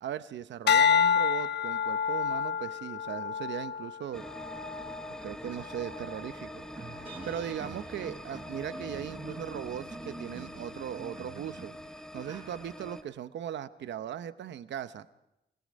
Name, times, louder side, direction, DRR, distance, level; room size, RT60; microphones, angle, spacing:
voice 1, 0.0-4.3 5.2-11.7 12.1-15.1, right 9 dB, 85° right, 12 dB, 0.8 m, -38 dB
sound 1, 0.7-5.1 5.7-6.1, left 7 dB, 70° left, 0.7 m, -28 dB
sound 2, 4.1-13.0, equal, 5° left, 0.7 m, -44 dB
sound 3, 4.6-4.7 5.1-13.1, right 3 dB, 30° right, 4.2 m, -48 dB
28.5 x 18.0 x 5.3 m, 0.88 s
wide cardioid pair, 145°, 18 cm